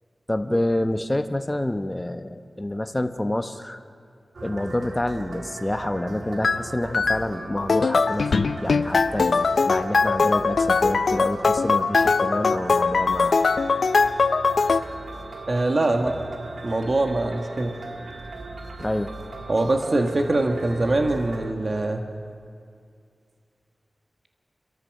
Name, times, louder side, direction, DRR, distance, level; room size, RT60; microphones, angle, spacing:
voice 1, 0.3-3.8 4.4-13.4 18.8-19.1, left 1 dB, 15° left, 8 dB, 0.8 m, -28 dB
sound 1, 4.3-21.5, right 3 dB, 90° right, 1.7 m, -38 dB
sound 2, 6.4-6.6 6.9-7.2 7.6-14.8, left 4 dB, 75° left, 0.5 m, -21 dB
voice 2, 15.5-16.2 16.6-17.7 19.5-22.0, right 2 dB, 45° right, 4 dB, 1.4 m, -23 dB
29.5 x 13.5 x 6.5 m, 2.3 s
wide cardioid pair, 105°, 0 cm